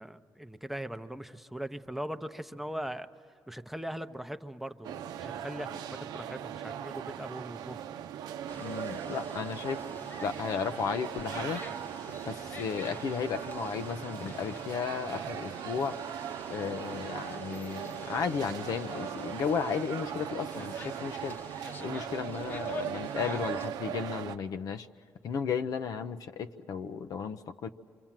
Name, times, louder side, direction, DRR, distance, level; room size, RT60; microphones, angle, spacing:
voice 1, 0.0-3.1 3.5-5.9 6.1-7.8, right 1 dB, 5° right, 8 dB, 0.8 m, -40 dB
sound 1, 4.8-24.4, right 9 dB, 80° right, 0.7 m, -39 dB
sound 2, 8.5-23.7, left 3 dB, 30° left, 1.1 m, -48 dB
voice 2, 8.6-9.8 10.2-11.6 12.3-16.0 16.5-21.4 21.8-24.9 25.2-27.7, left 6 dB, 65° left, 9 dB, 0.8 m, -34 dB
27.5 x 25.5 x 7.5 m, 2.3 s
cardioid pair, 100°, 7 cm